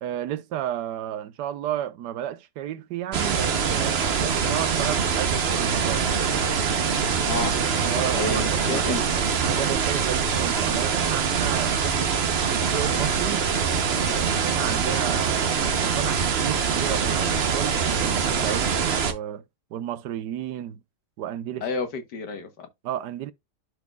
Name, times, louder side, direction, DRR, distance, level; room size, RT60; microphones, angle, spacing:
voice 1, 0.0-6.2 7.8-9.1 9.4-11.8 12.5-13.5 13.8-15.5 15.8-19.4 19.7-20.8 21.2-21.7 22.8-23.3, right 11 dB, 90° right, 1.3 m, -32 dB
sound 1, 3.1-19.1, right 6 dB, 45° right, 0.9 m, -24 dB
voice 2, 7.3-7.6 8.1-9.0 21.6-22.7, left 4 dB, 85° left, 1.9 m, -30 dB
12.0 x 4.2 x 2.3 m
omnidirectional pair, 1.8 m